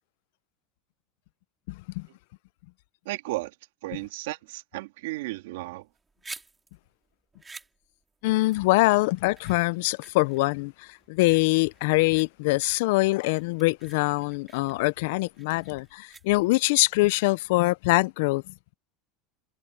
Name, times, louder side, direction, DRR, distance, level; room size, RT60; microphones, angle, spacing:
voice 1, 1.7-2.1 8.2-18.5, left 22 dB, 75° left, 0.5 m, -24 dB
voice 2, 3.1-3.5 3.8-5.9, right 19 dB, 80° right, 2.1 m, -34 dB
sound 1, 5.8-16.7, right 3 dB, 15° right, 5.0 m, -50 dB
supercardioid pair, 115°, 0 cm